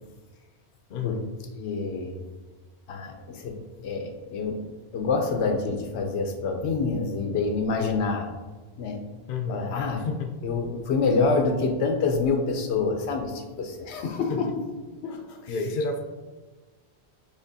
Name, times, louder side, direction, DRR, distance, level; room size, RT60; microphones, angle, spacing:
voice 1, 0.9-1.3 9.3-10.3 14.3-14.5 15.5-16.0, left 3 dB, 60° left, 5 dB, 0.6 m, -31 dB
voice 2, 1.5-2.2 2.9-4.6 4.9-8.3 8.8-9.0 9.5-10.1 10.4-14.5 15.0-15.5, left 4 dB, 85° left, 4 dB, 0.9 m, -27 dB
6.5 x 2.9 x 2.7 m, 1.3 s
omnidirectional pair, 1.1 m